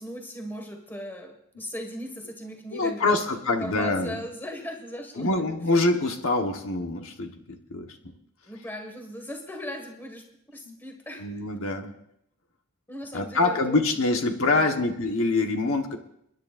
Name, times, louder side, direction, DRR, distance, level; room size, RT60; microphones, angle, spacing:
voice 1, 0.0-3.2 3.6-5.6 8.5-10.2 10.5-11.3 12.9-13.8 14.5-14.8, equal, 10° left, 3 dB, 1.7 m, -38 dB
voice 2, 2.7-4.2 5.2-8.0 10.7-10.8 11.2-11.9 13.1-16.0, left 2 dB, 65° left, 4 dB, 1.2 m, -25 dB
29.0 x 10.5 x 2.5 m, 0.76 s
head